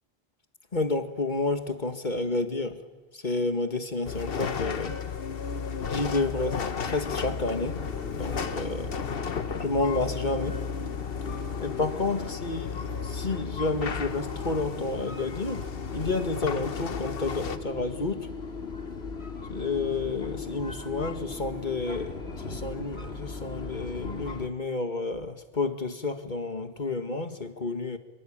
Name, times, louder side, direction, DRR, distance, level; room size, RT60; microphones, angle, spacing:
voice 1, 0.7-2.8 3.1-5.0 5.9-7.8 8.1-8.9 9.6-10.6 11.6-15.7 15.9-18.3 19.5-28.0, left 3 dB, 50° left, 7 dB, 2.0 m, -30 dB
sound 1, 4.0-17.6, left 6 dB, 65° left, 1.3 m, -34 dB
sound 2, 7.0-24.5, left 4 dB, 90° left, 2.5 m, -38 dB
25.5 x 25.0 x 8.9 m, 1.2 s
omnidirectional pair, 1.0 m